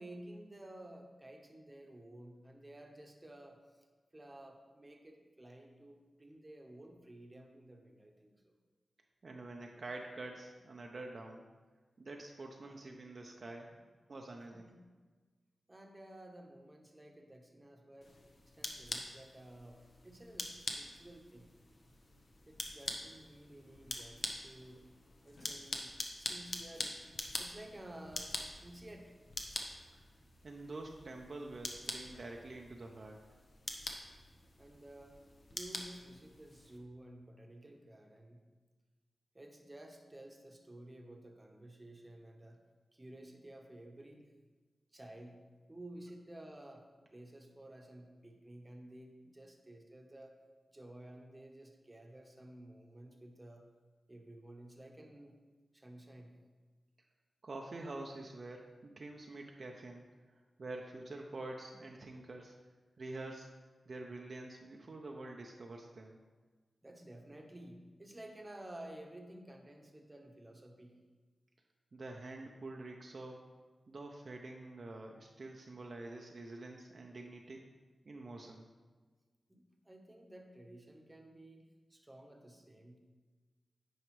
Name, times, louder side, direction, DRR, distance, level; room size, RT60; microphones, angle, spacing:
voice 1, 0.0-3.8 4.1-8.5 12.6-12.8 14.5-14.8 15.7-18.2 18.5-21.5 22.5-24.9 25.2-27.0 27.3-29.2 34.6-35.2 35.5-38.5 39.3-42.6 42.9-44.3 44.9-45.4 45.7-50.4 50.7-53.7 54.1-55.4 55.7-56.4 66.8-71.0 79.5-83.0, right 1 dB, 25° right, 2 dB, 1.0 m, -53 dB
voice 2, 9.2-11.4 12.0-13.7 14.1-14.7 29.9-30.0 30.4-33.2 57.4-60.0 60.6-62.5 63.0-63.5 63.9-66.2 71.9-73.5 73.9-77.6 78.1-78.7, right 2 dB, 55° right, 1 dB, 0.6 m, -47 dB
sound 1, 18.0-36.8, left 2 dB, 55° left, 0.8 m, -45 dB
9.2 x 4.8 x 3.2 m, 1.3 s
cardioid pair, 65°, 0 cm